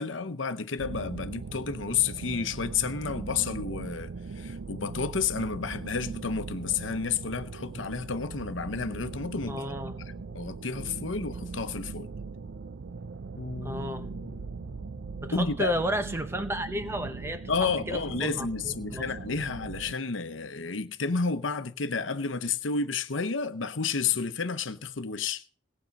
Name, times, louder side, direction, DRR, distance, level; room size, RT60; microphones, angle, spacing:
voice 1, 0.0-9.6 10.3-12.1 15.3-15.7 17.5-25.4, left 5 dB, 85° left, 0.9 m, -31 dB
sound 1, 0.8-19.9, right 4 dB, 75° right, 0.5 m, -40 dB
voice 2, 9.5-9.9 10.3-10.4 13.6-14.1 15.2-19.1, equal, 15° right, 1.0 m, -33 dB
Bass guitar, 13.4-19.6, left 3 dB, 55° left, 1.0 m, -48 dB
18.0 x 8.6 x 5.3 m
head